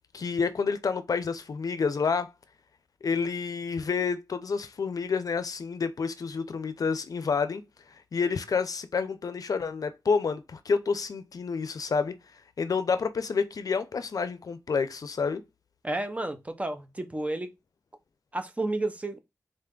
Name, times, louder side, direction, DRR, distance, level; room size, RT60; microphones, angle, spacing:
voice 1, 0.1-2.3 3.0-7.6 8.1-12.1 12.6-15.4, left 5 dB, 65° left, 0.5 m, -29 dB
voice 2, 15.8-17.5 18.3-19.2, right 2 dB, 20° right, 0.8 m, -31 dB
3.9 x 3.3 x 3.7 m
wide cardioid pair, 80°, 7 cm